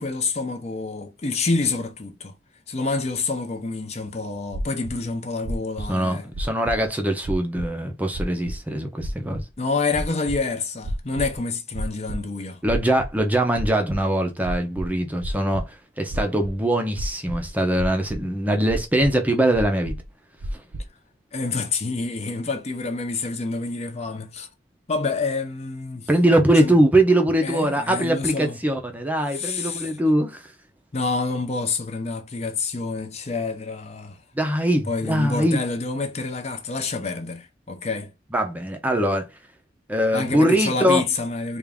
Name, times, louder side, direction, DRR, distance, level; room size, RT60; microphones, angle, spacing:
voice 1, 0.0-2.3 2.7-6.3 9.6-12.6 21.3-24.5 24.9-26.1 26.6-26.8 27.4-28.6 29.3-29.9 30.9-34.2 34.9-38.1 40.1-41.6, left 3 dB, 35° left, 0.5 m, -27 dB
sound 1, 4.5-4.9 5.4-5.9 6.3-6.9 7.2-7.7 8.1-8.6 9.0-9.4 9.9-10.4 10.8-11.4 11.7-12.2 12.7-13.2 13.5-14.0 14.4-15.6 16.1-16.5 17.0-17.5 17.8-18.2 18.7-19.1 19.5-20.1 20.4-20.8, right 1 dB, 70° right, 0.6 m, -30 dB
voice 2, 5.9-9.4 12.6-19.9 20.5-20.6 26.1-30.5 34.3-35.6 38.3-39.3 39.9-41.0, right 1 dB, 10° right, 0.6 m, -22 dB
3.5 x 2.5 x 3.5 m
head